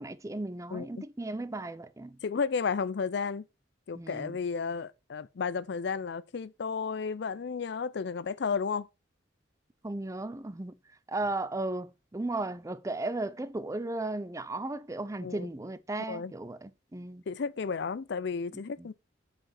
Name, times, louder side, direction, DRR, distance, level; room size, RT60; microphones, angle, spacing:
voice 1, 0.0-2.2 3.9-4.3 9.8-10.7 11.1-17.2 18.8-18.9, right 2 dB, 15° right, 0.5 m, -35 dB
voice 2, 0.7-1.0 2.2-3.4 3.9-8.9 15.2-15.5 16.1-16.3 17.3-18.9, left 5 dB, 65° left, 0.5 m, -33 dB
7.5 x 5.0 x 4.3 m
head